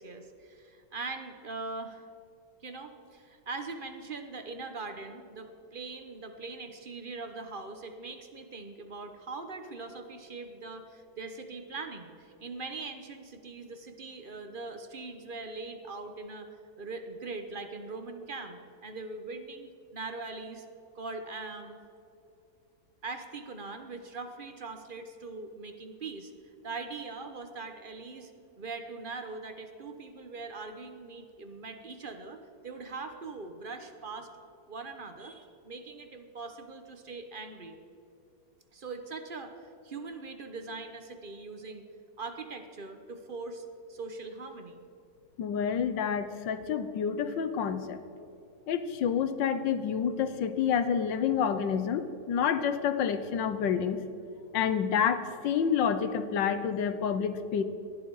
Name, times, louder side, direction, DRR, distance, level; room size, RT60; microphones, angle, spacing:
voice 1, 0.0-2.0 2.6-20.6 20.9-21.8 23.0-26.3 26.6-28.3 28.6-32.4 32.6-34.3 34.7-37.8 38.7-41.8 42.2-44.8, right 3 dB, 35° right, 6 dB, 0.9 m, -41 dB
voice 2, 45.4-48.0 48.7-54.0 54.5-57.6, left 7 dB, 75° left, 11 dB, 1.5 m, -28 dB
19.0 x 12.0 x 4.8 m, 2.7 s
omnidirectional pair, 2.0 m